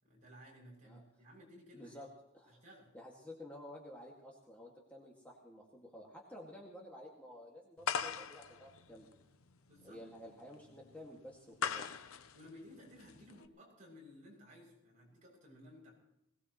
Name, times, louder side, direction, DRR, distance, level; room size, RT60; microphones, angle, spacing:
voice 1, 0.0-2.0 2.5-2.9 9.7-10.0 12.3-15.9, left 1 dB, 40° right, -3 dB, 7.0 m, -57 dB
voice 2, 1.7-2.1 2.3-2.6 2.9-9.1 9.8-12.0, left 1 dB, 5° left, -3 dB, 2.0 m, -52 dB
sound 1, 7.8-13.5, left 6 dB, 90° left, 0.8 m, -41 dB
21.5 x 18.5 x 3.1 m, 0.84 s
head